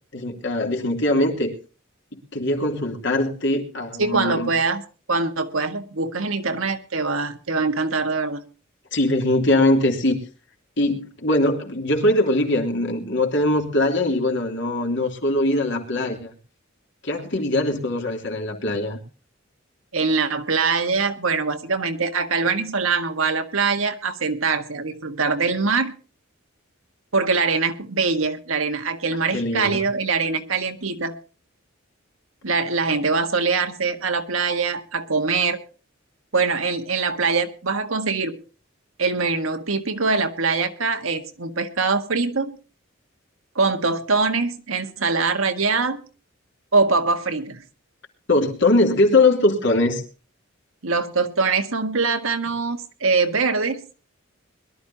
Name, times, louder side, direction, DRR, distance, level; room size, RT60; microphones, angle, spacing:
voice 1, 0.1-1.6 2.1-4.5 8.9-10.2 10.8-16.3 17.0-19.0 29.3-29.8 48.3-50.0, left 2 dB, 60° left, 2 dB, 2.9 m, -21 dB
voice 2, 4.0-4.8 5.1-8.5 19.9-26.0 27.1-31.1 32.4-35.6 36.3-38.4 39.0-42.5 43.6-46.0 46.7-47.6 50.8-53.8, right 4 dB, 90° right, 7 dB, 1.6 m, -23 dB
22.0 x 12.5 x 2.8 m, 0.35 s
head